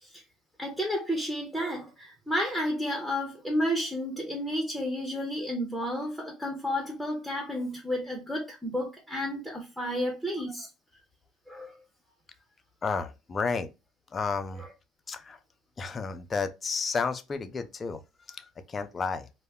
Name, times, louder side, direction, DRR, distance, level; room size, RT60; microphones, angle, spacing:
voice 1, 0.6-10.7 11.5-11.7 14.6-14.7, equal, ahead, 0.7 m, -31 dB
voice 2, 12.8-13.7 14.1-14.6 15.1-15.4 15.8-18.0 18.3-19.3, left 4 dB, 30° left, 0.4 m, -32 dB
2.1 x 2.1 x 3.4 m
supercardioid pair, 90°, 0 cm